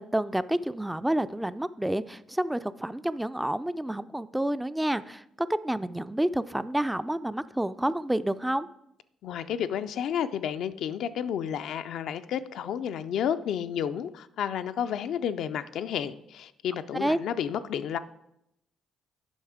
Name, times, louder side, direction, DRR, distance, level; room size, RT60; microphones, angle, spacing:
voice 1, 0.0-8.7 16.9-17.2, right 1 dB, 10° right, 13 dB, 0.4 m, -29 dB
voice 2, 9.2-18.0, left 9 dB, 70° left, 10 dB, 0.4 m, -31 dB
8.0 x 5.5 x 4.9 m, 0.81 s
hypercardioid pair, 50°, 0 cm